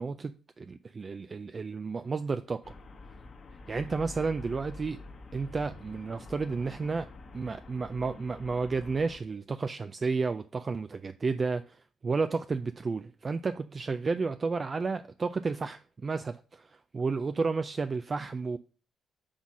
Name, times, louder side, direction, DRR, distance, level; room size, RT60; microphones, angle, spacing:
voice 1, 0.0-2.7 3.7-5.0 5.3-7.1 7.3-18.6, right 4 dB, 35° right, 0.4 m, -32 dB
Traffic noise roadway noise, 2.6-9.2, left 2 dB, 45° left, 1.2 m, -47 dB
6.2 x 4.0 x 6.0 m
cardioid pair, 90°, 0 cm